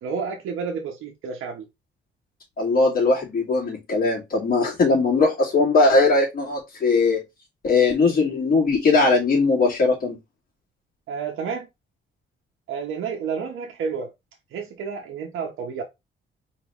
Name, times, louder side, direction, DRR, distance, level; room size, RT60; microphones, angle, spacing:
voice 1, 0.0-1.7 11.1-11.7 12.7-14.1 14.5-15.8, right 6 dB, 90° right, 0.9 m, -30 dB
voice 2, 2.6-7.2 7.6-10.2, left 3 dB, 45° left, 2.9 m, -20 dB
4.6 x 3.0 x 3.6 m
cardioid pair, 140°, 20 cm